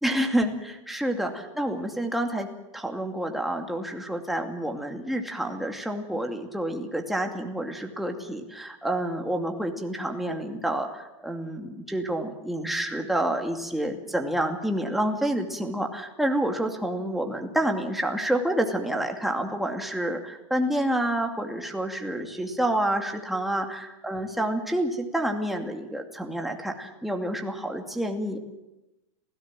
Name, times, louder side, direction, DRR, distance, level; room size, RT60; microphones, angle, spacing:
voice 1, 0.0-2.5 2.7-28.4, right 1 dB, ahead, 2 dB, 2.5 m, -28 dB
27.0 x 16.5 x 7.6 m, 0.99 s
supercardioid pair, 140°, 16 cm